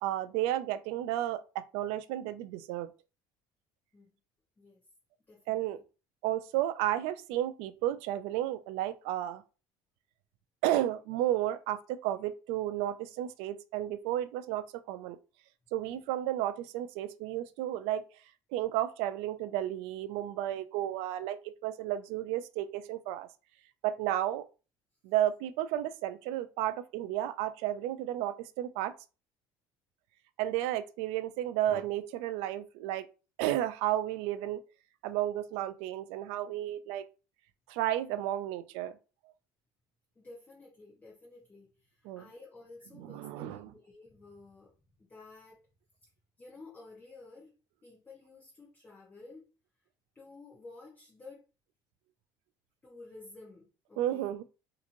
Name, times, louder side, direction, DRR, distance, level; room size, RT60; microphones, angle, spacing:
voice 1, 0.0-2.9 5.5-5.8 6.2-9.4 10.6-15.2 15.7-18.0 18.5-23.3 23.8-24.4 25.0-28.9 30.4-33.1 33.4-34.6 35.0-37.0 37.7-39.0 42.1-42.3 43.0-43.7 54.0-54.4, right 13 dB, 75° right, 0.4 m, -32 dB
voice 2, 5.3-5.8 15.9-16.0 40.2-45.7 46.4-47.5 47.8-49.5 50.1-51.4 52.8-54.4, left 3 dB, 15° left, 0.8 m, -52 dB
2.9 x 2.5 x 2.5 m
cardioid pair, 130°, 10 cm